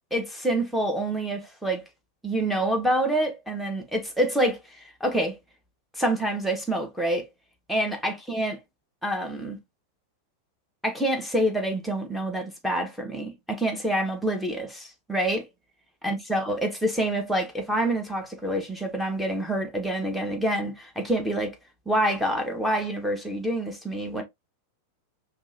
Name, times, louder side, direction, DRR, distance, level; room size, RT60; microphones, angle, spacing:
voice 1, 0.1-1.8 2.2-5.4 5.9-7.3 7.7-8.6 9.0-9.6 10.8-15.5 16.0-21.6 21.9-24.2, right 1 dB, ahead, 1.2 m, -27 dB
5.2 x 3.0 x 2.7 m
figure-of-eight pair, 90°, 0 cm